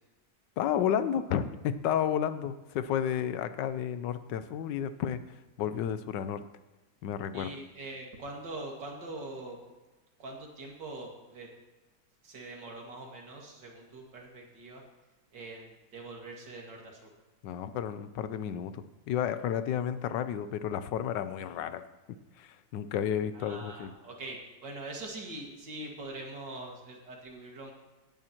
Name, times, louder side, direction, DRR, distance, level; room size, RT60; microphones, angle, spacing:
voice 1, 0.6-5.2 5.6-6.4 7.0-7.5 17.4-23.9, left 9 dB, 85° left, 12 dB, 1.3 m, -32 dB
voice 2, 7.3-9.6 10.2-11.5 12.2-14.8 15.3-17.1 23.3-27.7, right 2 dB, 80° right, 0 dB, 2.8 m, -43 dB
16.5 x 10.5 x 3.0 m, 1.1 s
omnidirectional pair, 1.9 m